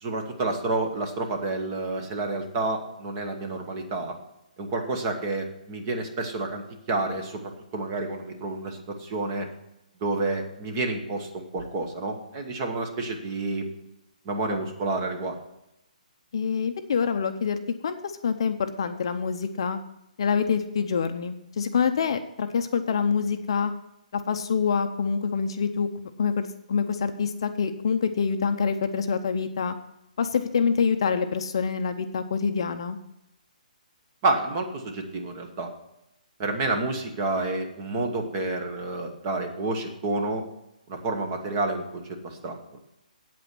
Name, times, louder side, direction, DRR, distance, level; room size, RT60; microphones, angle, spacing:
voice 1, 0.0-4.2 4.6-9.5 10.0-13.7 14.2-15.4 34.2-35.7 36.4-40.4 40.9-42.8, right 2 dB, 20° right, 4 dB, 1.0 m, -29 dB
voice 2, 16.3-17.6 17.8-19.8 20.2-23.7 24.1-25.9 26.2-29.7 30.2-33.0, left 6 dB, 35° left, 8 dB, 0.6 m, -26 dB
8.6 x 8.4 x 5.9 m, 0.84 s
hypercardioid pair, 180°, 5 cm